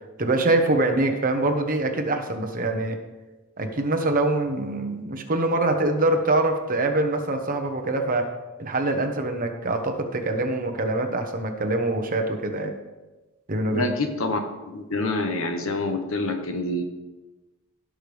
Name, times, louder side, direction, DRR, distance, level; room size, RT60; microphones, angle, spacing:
voice 1, 0.2-3.0 3.6-8.3 8.6-12.7 13.5-13.8, right 2 dB, 40° right, 5 dB, 1.1 m, -24 dB
voice 2, 13.7-14.4 14.7-16.8, left 2 dB, 65° left, 5 dB, 1.2 m, -26 dB
17.0 x 6.3 x 3.4 m, 1.1 s
head